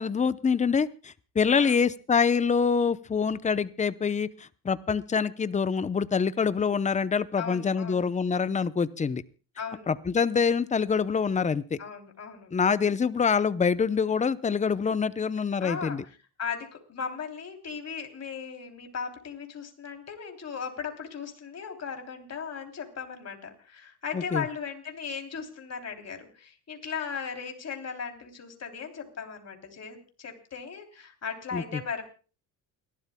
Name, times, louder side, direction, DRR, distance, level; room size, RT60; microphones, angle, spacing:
voice 1, 0.0-9.2 9.9-11.8 12.5-16.0 24.1-24.5 31.5-31.8, left 6 dB, 20° left, 16 dB, 0.7 m, -25 dB
voice 2, 1.5-1.8 7.4-8.1 9.6-9.9 11.8-12.5 15.6-16.0 16.4-32.0, left 6 dB, 40° left, 3 dB, 3.2 m, -37 dB
29.0 x 12.0 x 2.2 m, 0.36 s
supercardioid pair, 80°, 41 cm